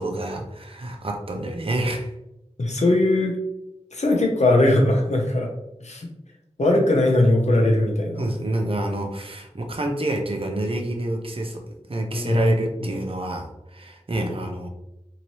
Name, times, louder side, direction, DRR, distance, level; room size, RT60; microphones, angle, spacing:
voice 1, 0.0-2.1 8.2-11.6 11.9-14.7, right 1 dB, 50° right, 3 dB, 0.6 m, -27 dB
voice 2, 2.6-3.3 3.9-5.5 5.8-6.1 6.6-8.2 12.1-12.6, left 1 dB, 70° left, 0 dB, 0.8 m, -20 dB
2.8 x 2.7 x 3.0 m, 0.88 s
wide cardioid pair, 40°, 12 cm